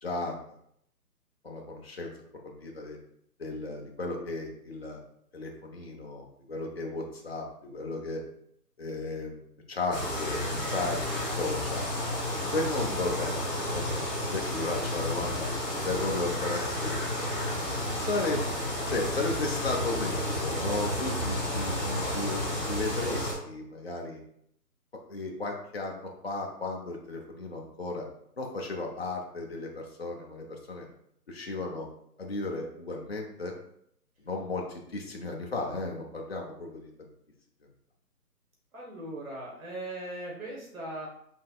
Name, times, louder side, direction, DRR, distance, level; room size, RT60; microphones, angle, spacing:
voice 1, 0.0-0.4 1.4-2.1 2.4-3.0 3.4-5.0 5.3-8.2 8.8-11.9 12.5-13.3 13.7-13.8 14.3-15.5 15.8-17.2 17.9-18.5 18.9-24.2 25.1-28.0 28.4-30.9 31.3-31.9 32.2-33.5 34.2-36.9, left 2 dB, 40° left, 0 dB, 0.7 m, -34 dB
sound 1, 9.9-23.3, left 1 dB, ahead, 1.5 m, -31 dB
voice 2, 38.7-41.1, right 1 dB, 55° right, -4 dB, 1.4 m, -39 dB
5.6 x 3.3 x 2.3 m, 0.72 s
hypercardioid pair, 165°, 49 cm